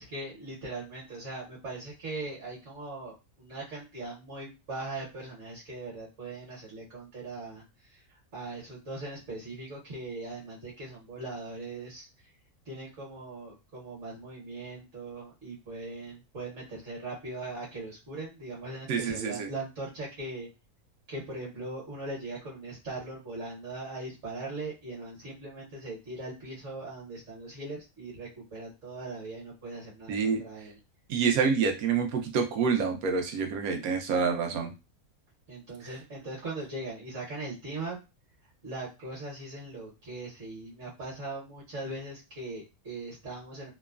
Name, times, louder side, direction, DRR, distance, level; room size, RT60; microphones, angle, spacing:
voice 1, 0.0-12.1 12.6-20.5 21.1-30.8 35.5-38.0 38.6-43.7, right 2 dB, 60° right, -5 dB, 1.3 m, -40 dB
voice 2, 18.9-19.5 30.1-30.4 31.1-34.7, right 5 dB, 85° right, 5 dB, 1.1 m, -27 dB
2.9 x 2.1 x 2.3 m, 0.26 s
omnidirectional pair, 1.5 m